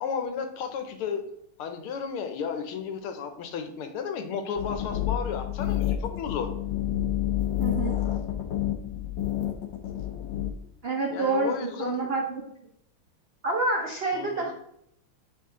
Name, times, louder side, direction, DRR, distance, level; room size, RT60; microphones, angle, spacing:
voice 1, 0.0-1.2 1.6-6.5 11.1-12.1 14.1-14.5, left 6 dB, 90° left, 7 dB, 1.7 m, -33 dB
sound 1, 4.6-10.5, left 12 dB, 70° left, 1.3 m, -29 dB
voice 2, 7.6-8.0 10.8-12.4 13.4-14.5, right 3 dB, 80° right, -1 dB, 0.5 m, -28 dB
8.5 x 3.6 x 3.8 m, 0.75 s
omnidirectional pair, 2.4 m